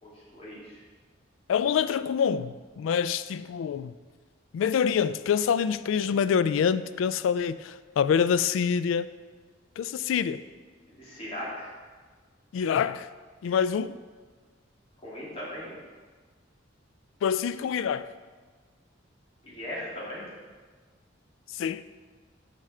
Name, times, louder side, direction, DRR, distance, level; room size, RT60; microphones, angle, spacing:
voice 1, 0.0-0.8 10.9-11.7 15.0-15.8 19.4-20.2, left 1 dB, 30° left, -7 dB, 2.4 m, -38 dB
voice 2, 1.5-3.9 4.5-9.1 9.8-10.4 12.5-13.1 13.4-13.9 17.2-18.1 21.5-21.8, left 7 dB, 90° left, 16 dB, 0.3 m, -26 dB
6.5 x 5.6 x 4.9 m, 1.4 s
head